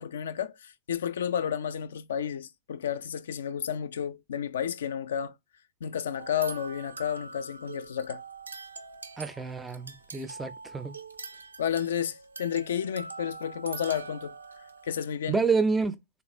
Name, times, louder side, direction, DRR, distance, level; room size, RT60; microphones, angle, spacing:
voice 1, 0.0-5.3 5.8-8.2 11.6-14.3 14.8-15.4, left 8 dB, 65° left, 0.3 m, -31 dB
sound 1, 6.2-15.1, right 4 dB, 80° right, 0.4 m, -43 dB
voice 2, 9.2-10.9 15.3-15.9, right 4 dB, 10° right, 0.4 m, -28 dB
3.3 x 2.5 x 2.5 m
figure-of-eight pair, 105°, 0 cm